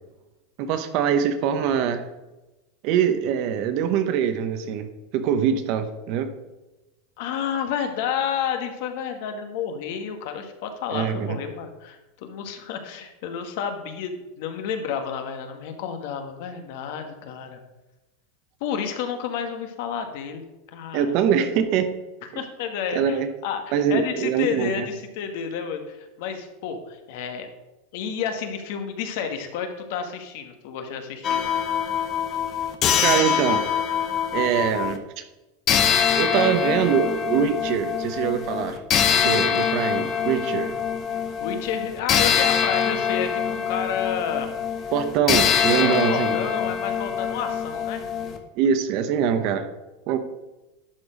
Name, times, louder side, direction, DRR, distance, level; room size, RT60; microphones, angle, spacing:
voice 1, 0.6-2.0 2.8-6.3 10.9-11.4 20.9-21.9 22.9-23.3 23.7-24.9 33.0-33.7 34.3-35.2 36.1-38.8 39.2-40.7 44.9-46.4 48.5-49.7 50.1-50.2, right 8 dB, 45° right, 9 dB, 0.9 m, -23 dB
voice 2, 7.2-17.6 18.6-20.4 20.7-21.2 22.3-27.5 27.9-31.5 41.4-44.5 45.8-48.4, left 7 dB, 55° left, 6 dB, 1.3 m, -30 dB
sound 1, 31.2-35.0 35.7-48.4, left 8 dB, 30° left, 0.9 m, -24 dB
11.5 x 4.5 x 5.1 m, 1.0 s
supercardioid pair, 160°, 0 cm